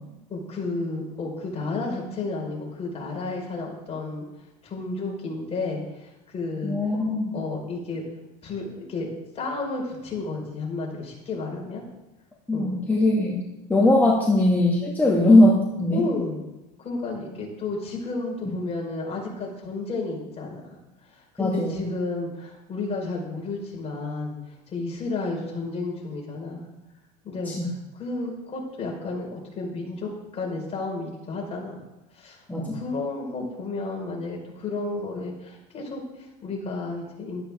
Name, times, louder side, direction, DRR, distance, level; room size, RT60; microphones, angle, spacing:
voice 1, 0.3-4.3 4.6-6.8 7.3-8.0 8.4-9.1 9.3-11.8 12.5-12.7 15.9-16.4 16.8-20.6 21.1-24.3 24.7-26.7 27.2-27.5 28.0-31.8 32.1-37.4, left 3 dB, 30° left, -2 dB, 4.9 m, -32 dB
voice 2, 6.6-7.4 12.5-13.4 13.7-16.1 21.4-21.8 27.5-27.6 32.5-32.8, left 1 dB, 10° left, -4 dB, 2.2 m, -20 dB
12.5 x 12.0 x 3.6 m, 0.96 s
supercardioid pair, 100°, 20 cm